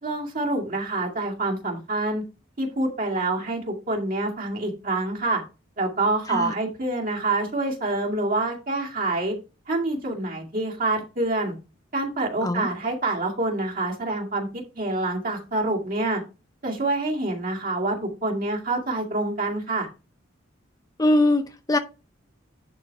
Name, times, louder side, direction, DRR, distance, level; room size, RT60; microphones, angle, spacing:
voice 1, 0.0-2.2 2.6-5.4 5.8-9.3 9.7-11.5 11.9-16.2 16.6-19.9, right 2 dB, 45° right, 2.2 m, -26 dB
voice 2, 21.0-21.8, left 1 dB, 20° left, 0.6 m, -21 dB
10.5 x 4.1 x 4.7 m
head